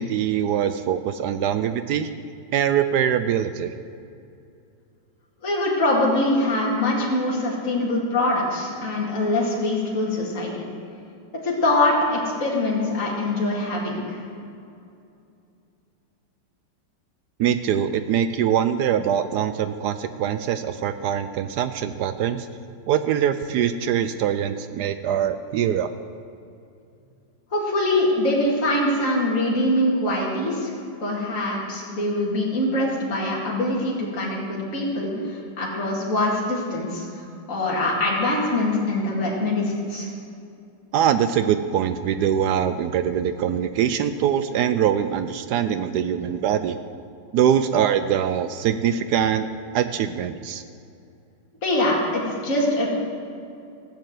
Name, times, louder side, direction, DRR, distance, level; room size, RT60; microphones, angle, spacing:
voice 1, 0.0-2.1 2.5-3.7 17.4-22.5 22.9-25.9 40.9-46.8 47.3-49.5 49.7-50.6, right 9 dB, 70° right, 11 dB, 1.1 m, -23 dB
voice 2, 5.4-10.6 11.4-14.2 27.5-30.7 31.0-40.1 51.6-52.9, left 1 dB, 45° left, -4 dB, 2.6 m, -23 dB
15.5 x 7.6 x 7.6 m, 2.6 s
omnidirectional pair, 2.0 m